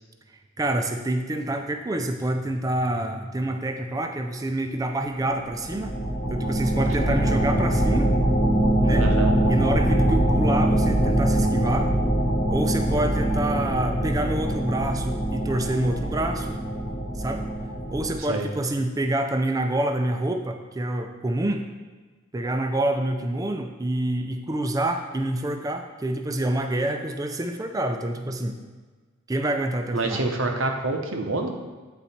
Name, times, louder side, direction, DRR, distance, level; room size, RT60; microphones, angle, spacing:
voice 1, 0.6-5.9 6.3-8.1 8.8-9.1 9.5-12.0 12.5-16.6 17.2-17.4 17.9-21.6 22.3-28.6 29.3-30.2, right 1 dB, 15° right, 6 dB, 0.4 m, -27 dB
sound 1, 5.3-18.2, right 1 dB, 35° left, 0.9 m, -23 dB
voice 2, 9.0-9.4 18.2-18.5 29.9-31.5, right 2 dB, 85° right, 3 dB, 0.9 m, -26 dB
8.6 x 4.0 x 4.3 m, 1.4 s
head